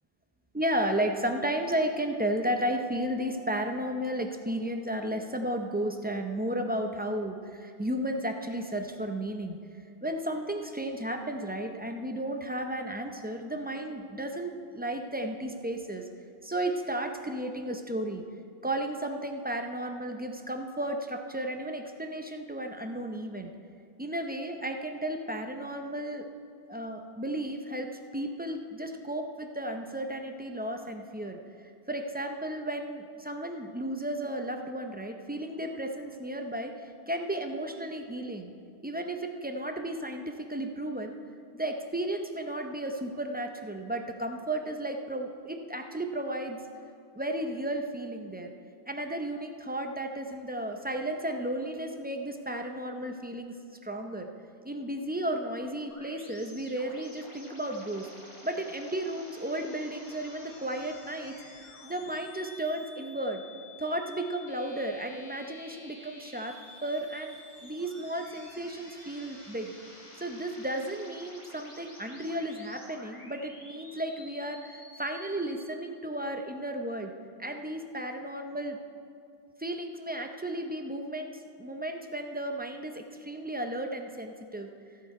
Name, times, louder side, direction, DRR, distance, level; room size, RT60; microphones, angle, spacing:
voice 1, 0.5-9.6 10.0-16.1 16.4-18.2 18.6-23.5 24.0-26.3 26.7-38.5 38.8-41.2 41.5-46.6 47.2-48.5 48.9-53.6 53.8-54.3 54.6-58.1 58.4-61.3 61.8-63.4 63.8-67.4 67.6-69.7 70.2-77.1 77.4-78.8 79.6-84.7, right 1 dB, 15° right, 4 dB, 0.3 m, -34 dB
sound 1, 55.9-75.6, left 1 dB, 25° left, 2.0 m, -51 dB
15.5 x 6.8 x 4.7 m, 2.3 s
omnidirectional pair, 1.1 m